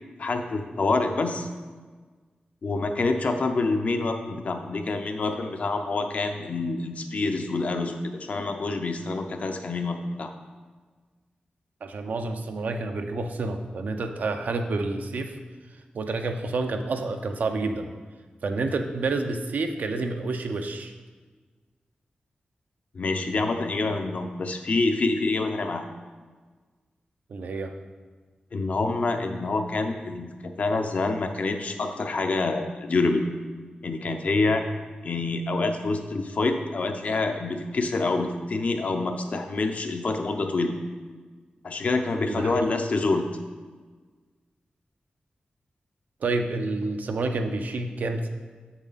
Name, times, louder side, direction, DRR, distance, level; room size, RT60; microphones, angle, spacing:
voice 1, 0.2-1.5 2.6-10.3 22.9-25.9 28.5-33.3 33.8-34.6 35.0-40.8 41.6-43.2, left 3 dB, 55° left, 5 dB, 0.6 m, -27 dB
voice 2, 11.8-15.4 15.9-17.9 18.4-20.9 27.3-27.7 42.3-42.7 46.2-48.3, right 3 dB, 70° right, 6 dB, 0.6 m, -29 dB
7.3 x 7.1 x 4.0 m, 1.4 s
wide cardioid pair, 160°, 3 cm